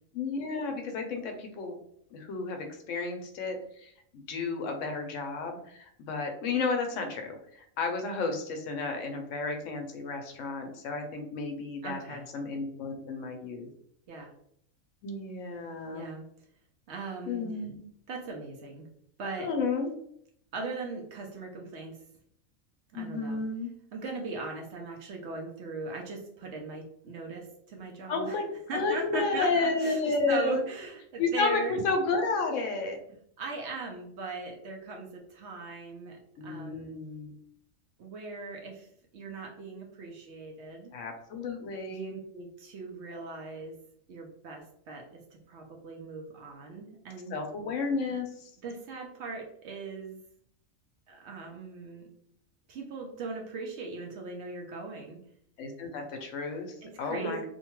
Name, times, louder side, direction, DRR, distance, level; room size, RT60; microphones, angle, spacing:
voice 1, 0.1-1.8 2.1-13.7 15.0-16.1 17.3-17.8 19.4-19.9 22.9-23.7 28.1-30.6 31.2-33.0 36.4-37.3 40.9-42.1 47.3-48.5 55.6-57.5, left 3 dB, 70° left, 4 dB, 0.9 m, -32 dB
voice 2, 11.8-12.2 14.1-14.3 15.9-16.2 16.9-17.5 18.1-18.9 19.2-19.5 20.5-22.0 22.9-23.4 23.9-28.4 28.7-31.8 33.4-37.0 38.0-40.9 41.9-43.8 44.1-47.4 48.6-50.2 51.1-52.1 52.7-55.2 56.8-57.5, right 3 dB, 65° right, 1 dB, 0.7 m, -39 dB
2.7 x 2.2 x 2.9 m, 0.68 s
omnidirectional pair, 1.4 m